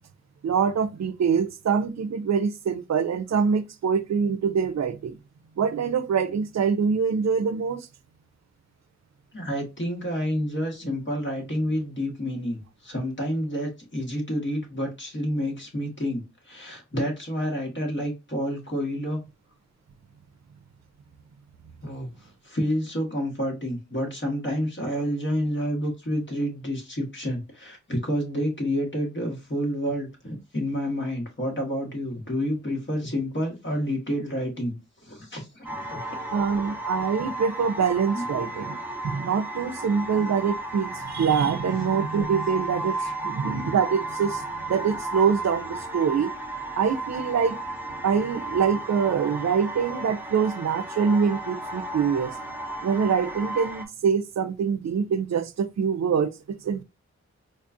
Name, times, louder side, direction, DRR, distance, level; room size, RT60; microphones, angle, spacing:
voice 1, 0.4-5.2 5.6-7.9 36.3-38.8 39.0-46.3 46.7-47.6 48.0-52.3 52.8-56.3 56.6-56.8, right 6 dB, 65° right, 0.5 m, -24 dB
voice 2, 9.3-19.2 21.8-34.8 35.0-36.2 38.1-38.3 40.3-40.4 43.0-43.1, equal, 40° left, 1.7 m, -29 dB
sound 1, 35.6-53.8, right 1 dB, 5° right, 1.0 m, -34 dB
4.2 x 2.4 x 2.6 m
cardioid pair, 60°, 29 cm